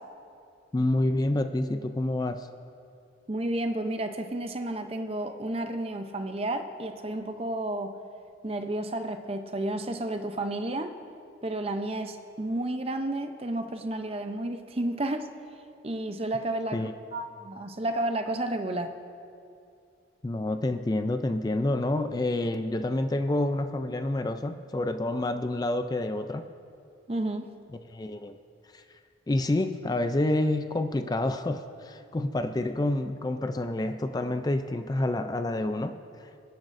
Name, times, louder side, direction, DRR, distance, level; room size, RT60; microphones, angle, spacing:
voice 1, 0.7-2.5 16.7-16.9 20.2-26.5 27.9-28.4 28.7-28.8 29.3-36.3, left 1 dB, 20° left, 8 dB, 0.3 m, -28 dB
voice 2, 3.3-7.9 8.4-11.0 11.4-15.3 15.8-16.8 17.1-18.9 27.1-27.5, right 1 dB, 30° right, 7 dB, 0.6 m, -31 dB
26.0 x 10.5 x 2.6 m, 2.5 s
head